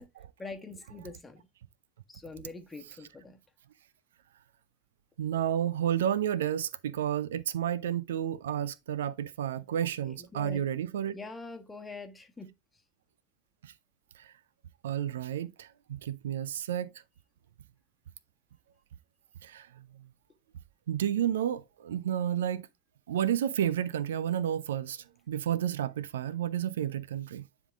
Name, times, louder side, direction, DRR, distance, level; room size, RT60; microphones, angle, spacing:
voice 1, 0.4-1.5 2.1-3.4 10.0-10.6 11.1-12.5, left 3 dB, 15° left, 1.4 m, -44 dB
voice 2, 5.2-11.1 13.6-13.7 14.2-14.3 14.8-16.9 19.4-20.1 20.9-22.7 23.1-27.5, right 10 dB, 70° right, 0.4 m, -31 dB
9.9 x 3.7 x 3.5 m
figure-of-eight pair, 75°, 0 cm